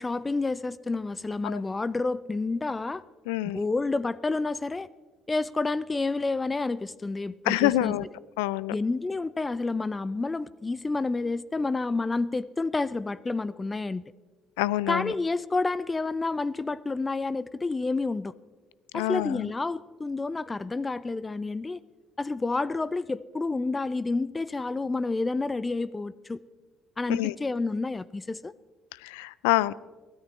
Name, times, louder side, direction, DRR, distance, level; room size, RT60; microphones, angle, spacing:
voice 1, 0.0-3.0 3.4-4.9 5.3-7.9 8.7-14.0 14.9-18.3 18.9-21.8 22.2-26.4 27.0-28.5, left 3 dB, 25° left, 19 dB, 0.5 m, -29 dB
voice 2, 3.3-3.6 7.5-8.1 8.4-8.7 14.6-15.1 18.9-19.5 27.1-27.3 29.0-29.7, left 17 dB, 85° left, 21 dB, 0.3 m, -26 dB
23.0 x 13.0 x 3.2 m, 1.3 s
hypercardioid pair, 60°, 0 cm